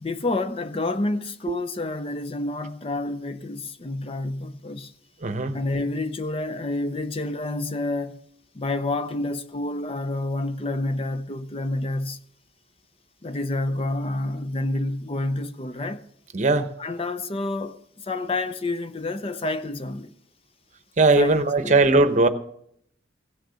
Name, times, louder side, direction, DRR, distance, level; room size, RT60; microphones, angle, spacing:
voice 1, 0.0-4.9 5.5-8.2 8.5-12.2 13.2-16.0 16.8-20.1 21.2-21.8, left 2 dB, 30° left, 0.5 m, -29 dB
voice 2, 5.2-5.6 16.3-16.7 21.0-22.3, right 2 dB, 40° right, 0.8 m, -19 dB
16.0 x 6.5 x 6.8 m
head